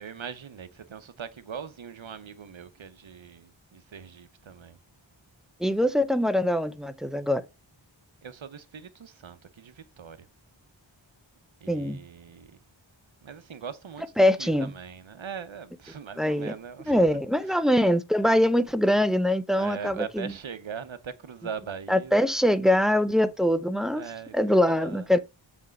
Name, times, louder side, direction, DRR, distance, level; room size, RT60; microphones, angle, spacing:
voice 1, 0.0-4.8 8.2-10.3 11.6-12.6 13.2-17.1 17.4-17.6 19.5-22.2 23.9-25.2, right 7 dB, 80° right, 0.8 m, -41 dB
voice 2, 5.6-7.4 11.7-12.0 14.2-14.7 16.2-16.5 16.9-20.3 21.9-24.0 24.3-25.2, left 1 dB, ahead, 0.6 m, -23 dB
7.3 x 3.4 x 5.2 m
wide cardioid pair, 45°, 46 cm